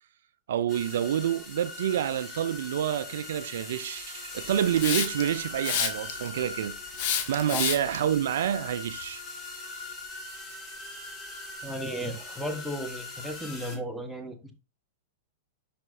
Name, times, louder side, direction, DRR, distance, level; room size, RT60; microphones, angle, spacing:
voice 1, 0.5-6.7 7.3-9.2, right 10 dB, 60° right, 0.4 m, -28 dB
sound 1, 0.7-13.8, left 3 dB, 20° left, 2.1 m, -41 dB
Hiss, 4.8-5.3 5.6-6.3 7.0-8.0, left 8 dB, 45° left, 1.0 m, -28 dB
voice 2, 11.6-14.5, equal, ahead, 1.1 m, -35 dB
10.5 x 4.2 x 2.5 m
figure-of-eight pair, 100°, 0 cm